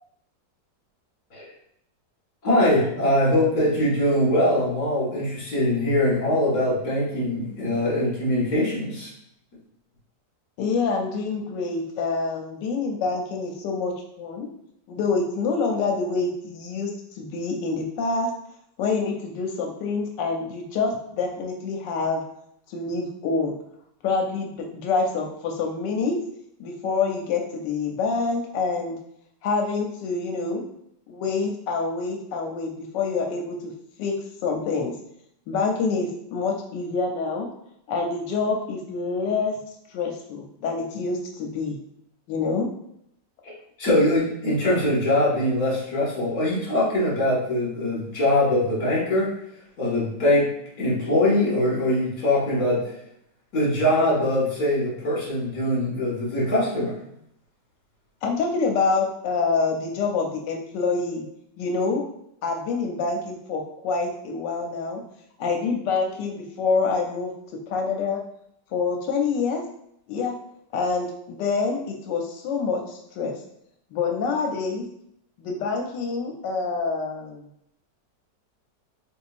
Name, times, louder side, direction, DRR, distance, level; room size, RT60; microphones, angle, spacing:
voice 1, 2.4-9.1 43.8-49.3 49.8-50.5 50.8-52.9 53.5-57.0, left 1 dB, 60° left, -5 dB, 2.0 m, -22 dB
voice 2, 10.6-14.5 14.9-16.9 17.1-18.3 18.8-22.2 22.7-23.5 24.0-26.2 26.6-29.0 29.4-30.6 31.1-33.6 34.0-34.1 34.4-34.9 35.5-37.5 37.9-39.5 39.9-41.8 42.3-42.7 58.2-61.2 61.6-62.0 62.4-65.0 65.4-67.3 67.7-68.2 68.7-69.6 70.1-70.3 70.7-73.3 73.9-74.9 75.4-77.5, left 4 dB, 85° left, 2 dB, 1.3 m, -26 dB
4.0 x 3.6 x 2.5 m, 0.74 s
omnidirectional pair, 1.9 m